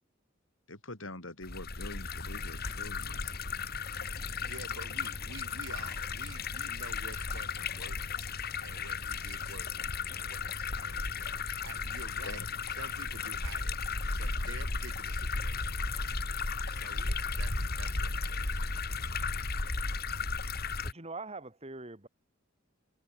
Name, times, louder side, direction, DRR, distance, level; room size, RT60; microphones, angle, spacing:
voice 1, 0.7-3.3 12.2-12.5, left 2 dB, 80° left, 7.0 m, -45 dB
sound 1, 1.4-20.9, left 4 dB, 50° left, 2.7 m, -35 dB
voice 2, 4.4-18.7, right 3 dB, 75° right, 4.7 m, -50 dB
voice 3, 20.8-22.1, right 3 dB, 30° right, 2.9 m, -43 dB
head